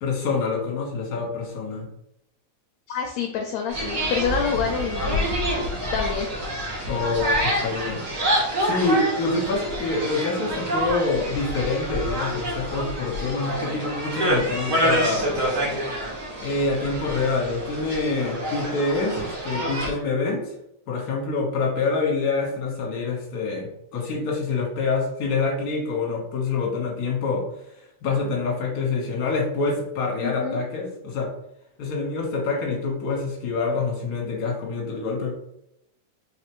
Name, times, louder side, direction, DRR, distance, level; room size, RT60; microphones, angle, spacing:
voice 1, 0.0-1.9 6.9-8.0 8.6-15.4 16.4-20.5 20.9-27.4 27.8-31.3 31.8-35.3, left 3 dB, 50° left, -2 dB, 1.3 m, -26 dB
voice 2, 2.9-6.3 30.2-30.6, left 6 dB, 80° left, 3 dB, 1.6 m, -28 dB
sound 1, 3.7-19.9, equal, 70° right, 0.8 m, -27 dB
4.0 x 3.6 x 3.0 m, 0.78 s
omnidirectional pair, 3.5 m